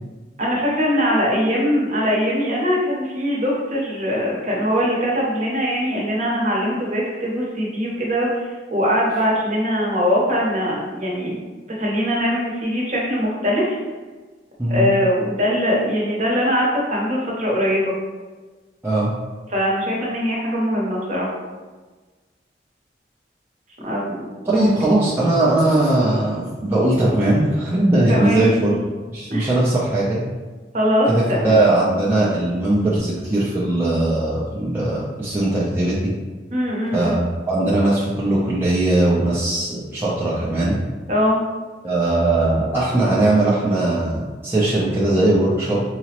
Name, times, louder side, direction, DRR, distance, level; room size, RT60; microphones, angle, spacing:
voice 1, 0.4-11.4 11.8-13.8 14.7-17.9 19.5-21.3 23.8-24.7 28.1-28.5 29.3-29.5 30.7-31.6 36.5-37.2 41.1-41.4, equal, 40° right, -4 dB, 0.9 m, -21 dB
voice 2, 24.5-28.7 29.1-30.2 31.1-36.1 36.9-40.8 41.8-45.8, right 2 dB, 10° right, -9 dB, 0.5 m, -19 dB
4.8 x 2.0 x 2.9 m, 1.3 s
head